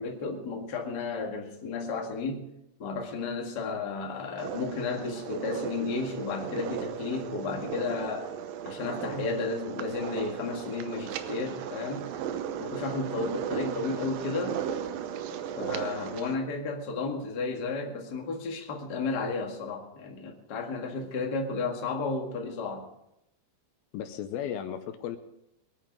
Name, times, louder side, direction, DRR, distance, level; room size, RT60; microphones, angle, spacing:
voice 1, 0.0-2.4 2.8-8.3 8.6-12.1 12.6-14.6 15.6-22.9, left 3 dB, 35° left, 1 dB, 1.7 m, -33 dB
sound 1, 4.4-16.3, right 9 dB, 75° right, 2.3 m, -36 dB
voice 2, 23.9-25.2, left 9 dB, 80° left, 8 dB, 2.5 m, -35 dB
22.5 x 9.2 x 5.2 m, 0.84 s
omnidirectional pair, 4.5 m